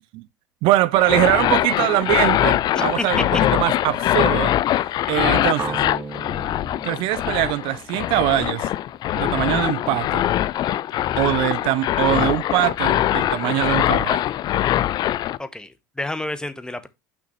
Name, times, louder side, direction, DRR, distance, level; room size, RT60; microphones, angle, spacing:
voice 1, 0.6-3.3 3.5-4.5 5.1-5.8 6.8-8.7 9.1-10.2 11.2-14.2, right 16 dB, 60° right, 0.5 m, -22 dB
sound 1, 0.9-15.4, left 13 dB, 45° left, 0.4 m, -22 dB
voice 2, 2.7-3.4 15.4-16.9, left 2 dB, 10° left, 0.9 m, -29 dB
sound 2, 5.6-9.5, right 3 dB, 25° right, 1.2 m, -36 dB
6.2 x 6.0 x 3.1 m
hypercardioid pair, 80°, 10 cm